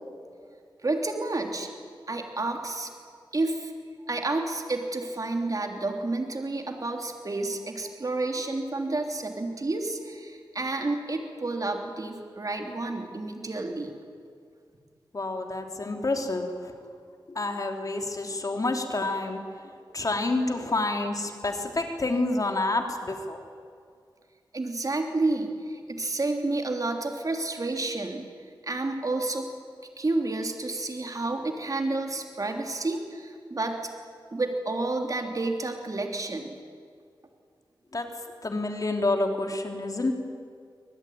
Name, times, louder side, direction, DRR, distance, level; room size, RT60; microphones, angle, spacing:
voice 1, 0.8-1.7 2.1-2.9 3.3-3.7 4.1-14.0 24.5-28.2 28.7-29.5 30.0-33.8 34.3-36.6, right 2 dB, 45° right, 3 dB, 3.2 m, -30 dB
voice 2, 15.1-16.7 17.3-19.4 19.9-23.4 37.9-38.1 38.4-40.1, left 2 dB, 45° left, 4 dB, 3.1 m, -28 dB
24.5 x 20.0 x 9.4 m, 2.2 s
wide cardioid pair, 85°, 8 cm